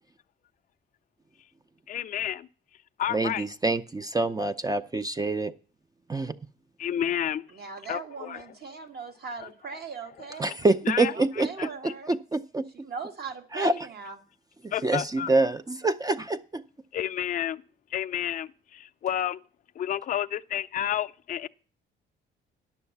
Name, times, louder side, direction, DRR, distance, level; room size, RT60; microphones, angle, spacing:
voice 1, 1.9-2.5 3.0-3.4 6.8-7.5 7.9-8.4 9.4-9.5 10.9-11.1 11.6-11.7 14.7-15.3 16.9-17.6 17.9-19.4 19.8-21.5, left 10 dB, 40° left, 0.4 m, -30 dB
voice 2, 3.1-5.5 6.1-6.3 10.4-11.5 12.0-12.6 13.5-13.7 14.6-16.6, right 2 dB, 20° right, 0.5 m, -26 dB
voice 3, 7.5-10.6 11.1-12.1 12.7-14.2, right 5 dB, 55° right, 1.6 m, -40 dB
10.5 x 6.5 x 7.0 m
cardioid pair, 90°, 20 cm